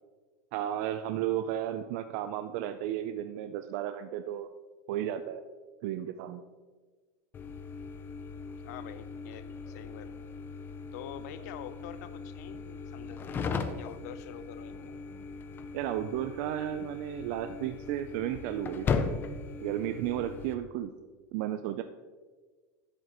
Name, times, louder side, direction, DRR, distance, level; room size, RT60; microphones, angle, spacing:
voice 1, 0.5-4.5 4.9-5.4 5.8-6.5 15.7-19.2 19.6-20.9 21.3-21.8, right 11 dB, 55° right, 9 dB, 0.4 m, -33 dB
sound 1, 7.3-20.5, left 5 dB, 20° left, 0.5 m, -38 dB
voice 2, 8.6-10.3 10.9-13.4 13.8-14.9, left 10 dB, 70° left, 13 dB, 0.6 m, -46 dB
10.5 x 7.7 x 3.0 m, 1.4 s
supercardioid pair, 145°, 9 cm